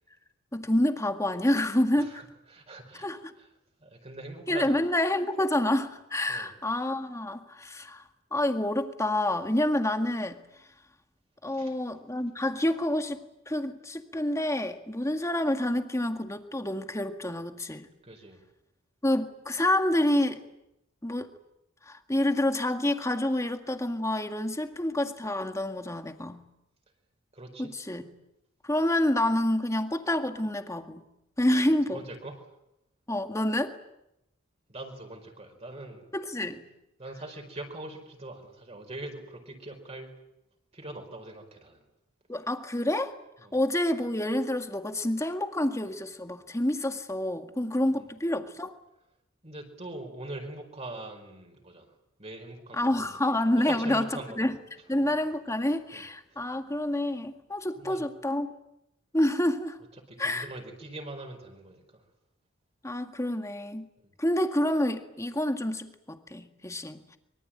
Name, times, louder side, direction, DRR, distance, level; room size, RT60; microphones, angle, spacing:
voice 1, 0.5-2.2 3.0-3.3 4.5-8.0 8.3-10.4 11.4-13.2 13.5-17.9 19.0-20.4 21.0-21.3 21.9-26.4 27.6-28.1 28.6-31.1 31.4-32.0 33.1-33.7 36.1-36.6 42.3-43.1 43.5-48.7 52.7-54.1 54.4-54.6 54.9-58.5 59.1-59.8 60.2-60.5 62.8-63.9 64.2-67.0, left 1 dB, 15° left, 6 dB, 1.9 m, -28 dB
voice 2, 2.5-3.1 3.4-3.5 3.8-4.8 6.3-6.5 11.5-11.7 18.0-18.4 27.3-27.7 31.9-32.4 34.7-36.0 37.0-40.1 40.7-41.8 43.4-43.6 49.4-51.9 52.2-53.2 53.7-54.5 55.9-56.0 57.8-58.0 60.1-62.0 64.0-64.1, right 2 dB, 30° right, 2 dB, 4.9 m, -42 dB
24.5 x 23.5 x 8.9 m, 0.85 s
head